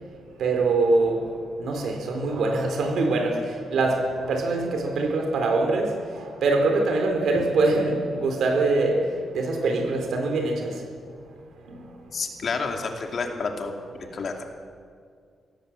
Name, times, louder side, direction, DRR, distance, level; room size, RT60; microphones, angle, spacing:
voice 1, 0.4-1.3 1.6-3.4 3.7-6.0 6.4-9.0 9.3-10.7 11.7-11.8, right 3 dB, 65° right, 4.1 m, -23 dB
voice 2, 12.1-13.7 14.0-14.4, left 4 dB, 40° left, 2.4 m, -29 dB
24.5 x 17.5 x 7.6 m
wide cardioid pair, 175°, 0 cm